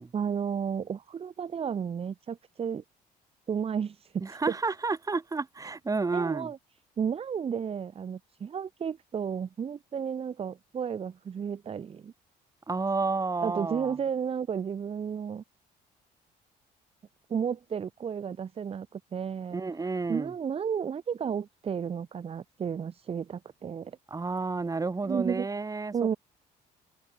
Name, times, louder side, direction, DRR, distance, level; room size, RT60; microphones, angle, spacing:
voice 1, 0.1-2.8 3.5-4.4 6.1-6.6 7.0-12.1 13.4-15.4 17.3-24.0 25.1-25.5 25.9-26.2, right 7 dB, 35° right, 1.1 m, -33 dB
voice 2, 4.2-6.5 12.7-14.0 19.5-20.3 24.1-25.9, right 3 dB, 20° right, 3.0 m, -30 dB
cardioid pair, 110°, 17 cm